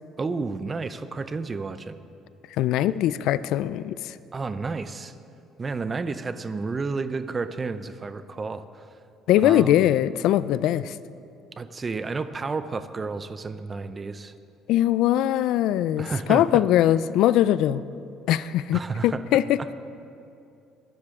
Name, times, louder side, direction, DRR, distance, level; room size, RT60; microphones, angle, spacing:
voice 1, 0.2-2.0 4.3-5.1 5.6-8.7 9.4-9.9 11.6-14.3 16.0-16.6 18.7-19.2 19.6-19.7, right 4 dB, 20° right, 12 dB, 0.4 m, -31 dB
voice 2, 2.6-4.1 9.3-11.0 14.7-17.8 18.3-19.6, left 12 dB, 70° left, 17 dB, 0.3 m, -21 dB
21.5 x 11.5 x 3.6 m, 2.6 s
cardioid pair, 160°, 0 cm